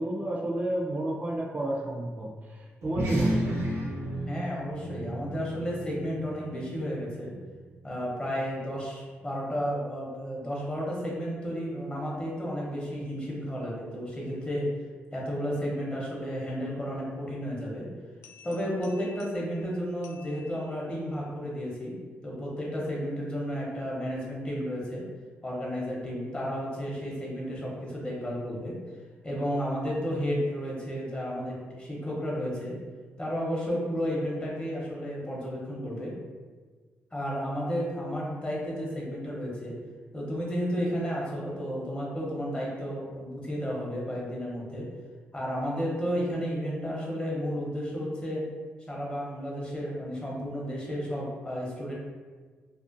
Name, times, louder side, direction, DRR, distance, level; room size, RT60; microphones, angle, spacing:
voice 1, 0.0-3.5, right 1 dB, 30° right, -2 dB, 0.4 m, -31 dB
sound 1, 2.8-7.6, right 1 dB, 85° right, 0.5 m, -33 dB
voice 2, 4.3-7.3 7.8-14.7 15.1-17.9 18.4-22.0 22.2-25.0 25.4-28.8 29.2-32.8 33.2-36.1 37.1-39.8 40.1-44.9 45.3-48.4 48.9-51.9, equal, 25° left, -4 dB, 0.8 m, -32 dB
sound 2, 18.2-21.2, left 6 dB, 80° left, 0.3 m, -54 dB
2.4 x 2.1 x 2.5 m, 1.5 s
cardioid pair, 75°, 5 cm